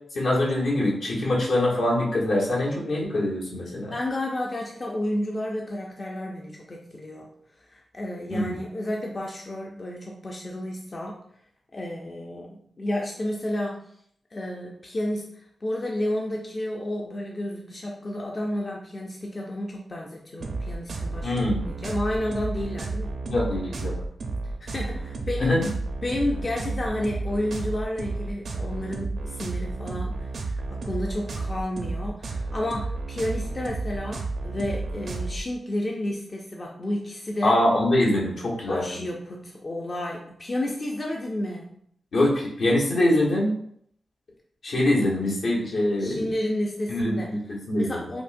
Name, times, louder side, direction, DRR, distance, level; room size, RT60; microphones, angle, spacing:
voice 1, 0.1-3.9 8.3-8.6 21.2-21.6 23.3-23.9 25.4-25.7 37.4-39.0 42.1-43.5 44.6-46.3 46.9-48.0, left 1 dB, 70° left, -5 dB, 1.1 m, -24 dB
voice 2, 3.9-7.3 7.6-11.2 11.7-13.8 14.3-23.2 24.6-25.6 26.0-37.6 38.7-41.8 46.0-48.2, left 1 dB, 30° left, -1 dB, 0.4 m, -31 dB
sound 1, 20.4-35.4, right 3 dB, 65° right, 0.5 m, -32 dB
5.1 x 2.1 x 2.5 m, 0.67 s
wide cardioid pair, 130°, 0 cm